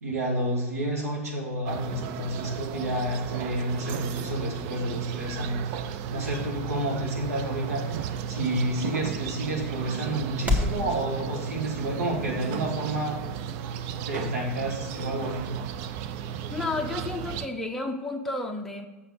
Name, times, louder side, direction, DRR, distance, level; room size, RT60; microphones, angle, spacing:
voice 1, 0.0-5.8 6.1-13.2 14.1-15.5, right 1 dB, 80° right, -2 dB, 2.3 m, -30 dB
sound 1, 1.7-17.5, right 8 dB, 50° right, 0.6 m, -34 dB
sound 2, 4.6-10.8, left 2 dB, 15° right, 1.5 m, -35 dB
voice 2, 16.5-18.9, left 3 dB, 5° left, 1 dB, 1.0 m, -31 dB
7.8 x 6.6 x 5.1 m, 1.1 s
figure-of-eight pair, 90°, 8 cm